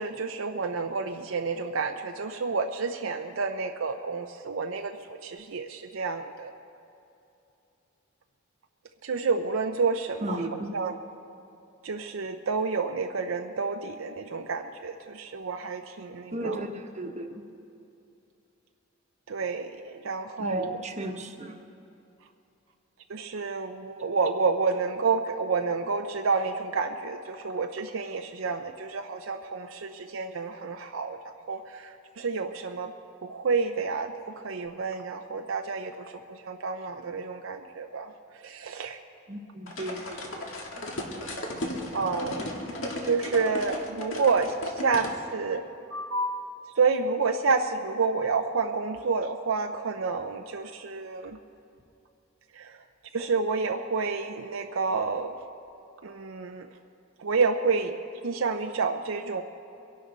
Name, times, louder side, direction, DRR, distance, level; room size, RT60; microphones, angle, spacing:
voice 1, 0.0-6.5 9.0-10.5 10.7-11.0 11.8-16.6 19.3-20.8 23.1-31.2 31.5-32.9 33.2-38.1 38.4-39.0 41.9-42.4 43.0-45.6 45.9-46.4 46.8-51.4 52.5-52.8 53.1-55.3 56.0-56.7 57.2-57.9 58.2-59.4, right 4 dB, 70° right, 5 dB, 0.6 m, -29 dB
voice 2, 10.2-10.7 16.3-17.4 20.4-21.6 39.3-40.5, right 1 dB, 35° right, 3 dB, 1.1 m, -35 dB
sound 1, 39.7-45.1, left 1 dB, 70° left, 1.8 m, -35 dB
23.0 x 11.5 x 4.0 m, 2.7 s
head